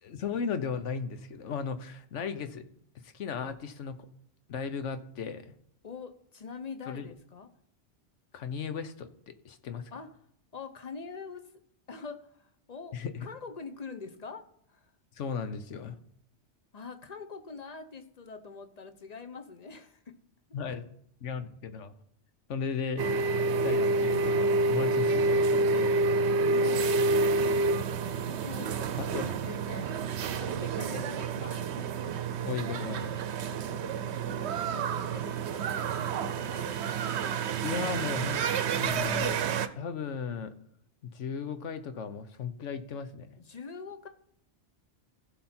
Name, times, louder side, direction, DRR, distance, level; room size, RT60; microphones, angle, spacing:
voice 1, 0.0-2.6 3.0-4.0 4.5-5.5 6.9-7.1 8.3-9.9 12.9-13.3 15.1-16.0 20.5-20.8 21.2-21.9 22.5-23.2 23.6-25.9 29.0-29.3 32.4-33.1 37.6-38.4 38.7-40.5 41.0-43.3, left 6 dB, 80° left, 10 dB, 1.2 m, -36 dB
voice 2, 5.8-7.5 9.9-10.1 10.5-11.6 11.9-14.9 16.7-20.2 26.4-27.3 28.3-30.0 30.4-31.9 34.2-36.7 43.4-44.1, left 5 dB, 40° left, 8 dB, 0.9 m, -44 dB
sound 1, 23.0-39.7, right 3 dB, 70° right, 0.9 m, -28 dB
16.0 x 5.8 x 4.4 m, 0.72 s
omnidirectional pair, 1.2 m